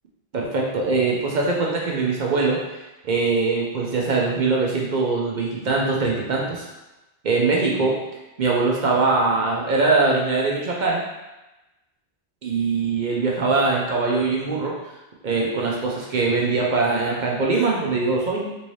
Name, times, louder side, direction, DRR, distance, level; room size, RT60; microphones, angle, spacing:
voice 1, 0.3-2.6 3.0-6.6 7.2-7.9 8.4-11.0 12.4-14.7 15.2-18.5, right 3 dB, 55° right, -2 dB, 0.6 m, -22 dB
3.5 x 2.7 x 3.1 m, 1.0 s
omnidirectional pair, 1.2 m